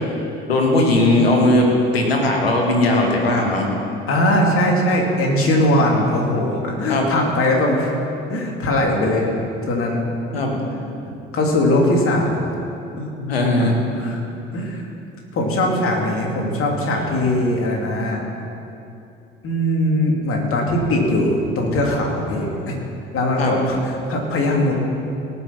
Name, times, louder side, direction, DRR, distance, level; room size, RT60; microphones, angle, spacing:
voice 1, 0.5-3.7 6.0-6.1 6.9-7.1 10.3-10.6 13.2-13.9 23.4-23.6, left 1 dB, 85° left, 1 dB, 1.6 m, -18 dB
voice 2, 4.1-7.9 8.3-9.3 9.7-10.0 11.3-12.4 13.0-13.1 13.6-13.7 14.0-14.2 14.5-14.9 15.3-18.2 19.4-22.9 23.1-24.7, left 1 dB, 45° left, 0 dB, 2.7 m, -20 dB
18.0 x 6.3 x 5.9 m, 2.7 s
figure-of-eight pair, 55°, 29 cm